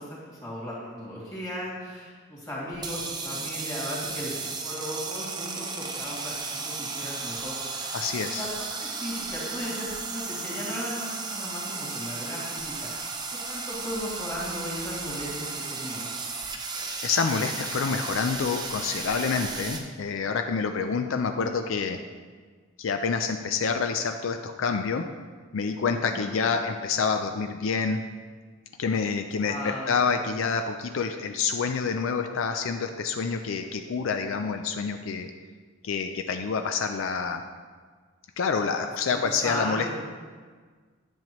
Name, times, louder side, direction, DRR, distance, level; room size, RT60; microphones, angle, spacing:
voice 1, 0.0-6.3 6.6-8.0 8.2-13.2 13.5-16.1 26.0-26.3 29.4-30.0 39.1-39.9, equal, 15° left, -7 dB, 2.4 m, -36 dB
sound 1, 2.7-19.8, right 4 dB, 20° right, 0.6 m, -34 dB
voice 2, 7.9-8.5 17.0-22.0 22.8-25.0 25.5-28.0 28.8-35.3 35.8-37.4 38.4-39.9, left 5 dB, 75° left, 6 dB, 0.4 m, -27 dB
10.5 x 7.2 x 3.0 m, 1.5 s
head